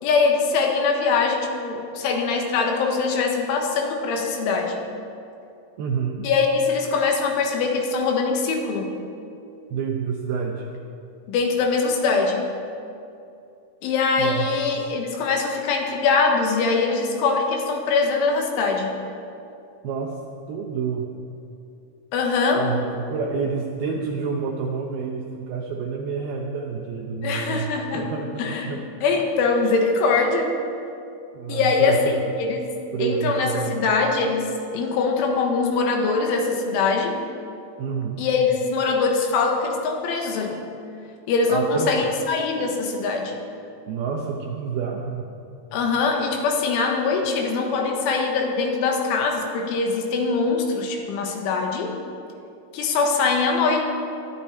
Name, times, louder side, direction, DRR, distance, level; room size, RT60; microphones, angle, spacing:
voice 1, 0.0-4.8 6.2-9.0 11.3-12.5 13.8-19.0 22.1-22.7 27.2-28.1 28.4-30.6 31.5-32.7 33.0-37.2 38.2-40.6 41.3-43.4 45.7-52.0 52.7-53.8, left 4 dB, 80° left, 2 dB, 3.9 m, -22 dB
voice 2, 5.8-6.3 9.7-10.7 14.2-14.5 19.8-20.2 20.5-21.1 22.6-27.6 27.9-28.8 31.3-32.2 32.9-33.9 37.8-38.2 41.5-42.1 43.9-45.3, right 6 dB, 75° right, 0 dB, 2.3 m, -28 dB
22.0 x 13.0 x 4.4 m, 2.6 s
omnidirectional pair, 5.7 m